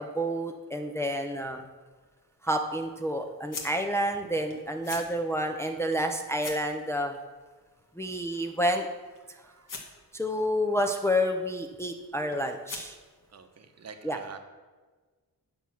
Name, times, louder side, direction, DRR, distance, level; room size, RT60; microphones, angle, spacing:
voice 1, 0.0-1.7 2.4-7.2 8.0-8.9 10.1-12.9 14.0-14.2, equal, 10° left, 3 dB, 0.5 m, -29 dB
sound 1, 1.7-13.3, left 4 dB, 65° left, 1.6 m, -48 dB
voice 2, 9.3-9.7 13.3-14.4, right 5 dB, 45° right, 7 dB, 0.9 m, -47 dB
9.5 x 6.9 x 6.0 m, 1.4 s
wide cardioid pair, 165°, 35 cm